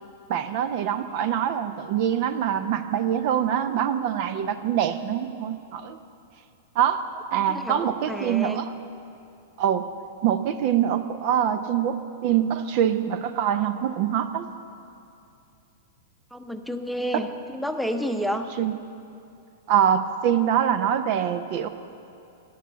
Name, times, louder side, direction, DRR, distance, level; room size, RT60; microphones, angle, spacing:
voice 1, 0.3-6.0 6.7-7.0 7.3-8.7 9.6-9.9 10.2-14.5 17.1-17.2 18.6-18.7 19.7-21.7, right 9 dB, 50° right, 11 dB, 0.6 m, -24 dB
voice 2, 7.5-8.6 16.3-18.5, equal, ahead, 7 dB, 0.8 m, -30 dB
12.0 x 11.0 x 7.0 m, 2.6 s
hypercardioid pair, 105°, 0 cm